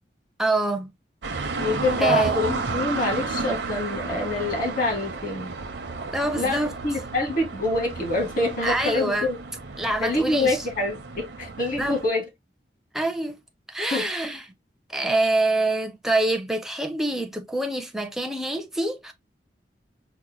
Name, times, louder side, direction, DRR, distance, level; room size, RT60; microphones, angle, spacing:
voice 1, 0.4-0.9 2.0-2.3 6.1-6.7 8.6-9.3 9.8-10.6 11.8-11.9 12.9-13.4 13.7-14.4 14.9-19.1, right 2 dB, ahead, 0.4 m, -25 dB
sound 1, 1.2-12.1, right 3 dB, 80° right, 0.6 m, -32 dB
voice 2, 1.6-5.5 6.3-9.4 10.0-12.2 13.9-14.1, left 2 dB, 50° left, 1.5 m, -26 dB
4.9 x 2.1 x 2.9 m
head